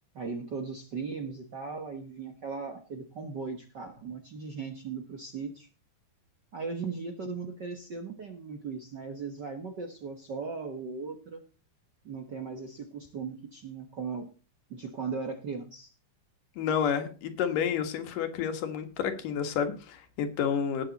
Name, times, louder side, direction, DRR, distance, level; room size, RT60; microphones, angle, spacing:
voice 1, 0.1-5.7 6.5-11.4 12.0-14.3 14.7-15.9, right 5 dB, 55° right, 5 dB, 1.2 m, -38 dB
voice 2, 16.6-20.8, left 7 dB, 85° left, 8 dB, 3.2 m, -30 dB
18.5 x 7.6 x 4.1 m, 0.34 s
omnidirectional pair, 3.7 m